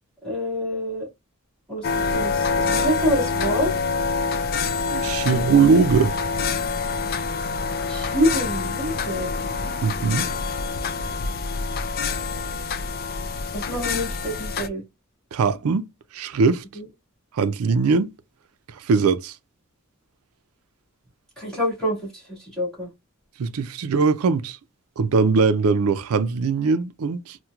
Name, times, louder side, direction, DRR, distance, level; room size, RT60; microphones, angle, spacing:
voice 1, 0.2-1.1 1.7-3.7 5.1-5.6 7.9-9.3 13.5-14.8 16.8-16.9 21.4-22.9, equal, 5° left, 1.9 m, -27 dB
sound 1, 1.8-14.7, left 4 dB, 45° left, 0.3 m, -26 dB
voice 2, 4.9-6.1 9.8-10.3 15.3-15.8 16.1-16.6 17.3-18.1 18.9-19.3 23.4-24.6 25.0-27.4, right 4 dB, 80° right, 0.4 m, -20 dB
4.3 x 2.2 x 2.3 m
head